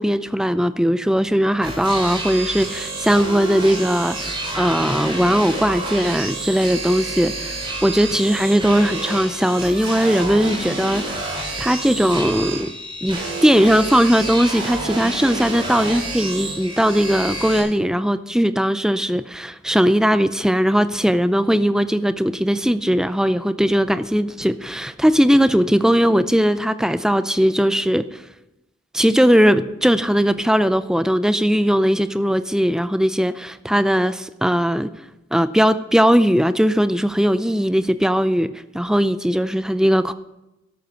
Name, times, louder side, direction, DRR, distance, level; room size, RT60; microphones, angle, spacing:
voice 1, 0.0-12.7 13.0-28.2 28.9-34.9 35.3-40.1, equal, 5° right, 12 dB, 0.5 m, -19 dB
sound 1, 1.6-17.6, right 2 dB, 25° right, 4.7 m, -29 dB
13.0 x 12.0 x 5.6 m, 0.94 s
head